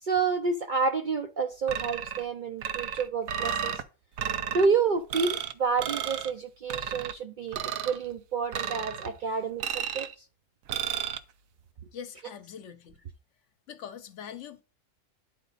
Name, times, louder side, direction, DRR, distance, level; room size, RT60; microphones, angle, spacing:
voice 1, 0.0-3.8 4.5-7.6 7.8-10.1, right 5 dB, 55° right, 0.5 m, -29 dB
sound 1, 1.7-2.3 2.6-3.8 4.2-4.7 5.1-5.5 5.8-6.3 6.7-7.1 7.5-8.0 8.5-9.1 9.6-10.1 10.7-11.2, right 8 dB, 85° right, 1.1 m, -32 dB
voice 2, 11.9-13.0 13.7-14.6, left 8 dB, 65° left, 1.0 m, -43 dB
10.0 x 4.0 x 4.0 m
omnidirectional pair, 1.4 m